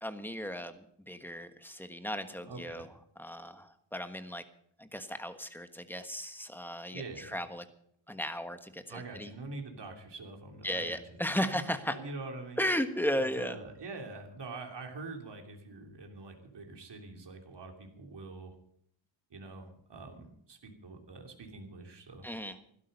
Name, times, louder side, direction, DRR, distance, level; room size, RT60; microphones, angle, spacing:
voice 1, 0.0-2.9 3.2-4.4 4.8-7.6 8.1-9.3 10.6-11.9 12.6-13.6 22.2-22.5, equal, 5° left, 8 dB, 1.4 m, -35 dB
voice 2, 2.4-2.9 6.9-7.4 8.9-11.0 11.9-12.6 13.2-18.5 19.3-22.3, right 3 dB, 55° right, 3 dB, 3.2 m, -45 dB
16.5 x 12.5 x 5.4 m, 0.68 s
wide cardioid pair, 110°, 48 cm